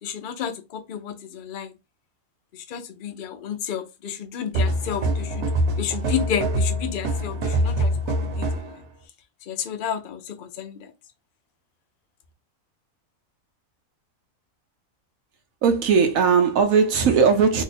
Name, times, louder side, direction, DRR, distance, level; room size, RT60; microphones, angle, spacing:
voice 1, 0.0-1.7 2.5-5.4 5.8-8.8 9.5-10.9, left 8 dB, 65° left, 0.5 m, -31 dB
sound 1, 4.5-8.7, right 1 dB, 60° right, 1.0 m, -24 dB
voice 2, 15.6-17.6, right 6 dB, 85° right, 1.1 m, -18 dB
2.9 x 2.3 x 4.0 m
omnidirectional pair, 1.4 m